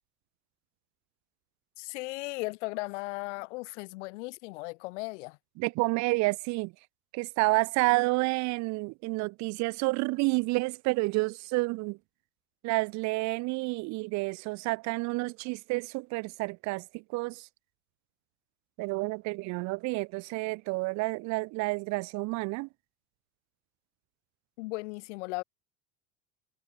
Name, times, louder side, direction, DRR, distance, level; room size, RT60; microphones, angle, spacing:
voice 1, 1.8-5.4 24.6-25.4, left 24 dB, 85° left, 1.9 m, -36 dB
voice 2, 5.6-6.7 7.1-12.0 12.6-17.5 18.8-22.7, right 25 dB, 55° right, 0.4 m, -29 dB
supercardioid pair, 105°, 35 cm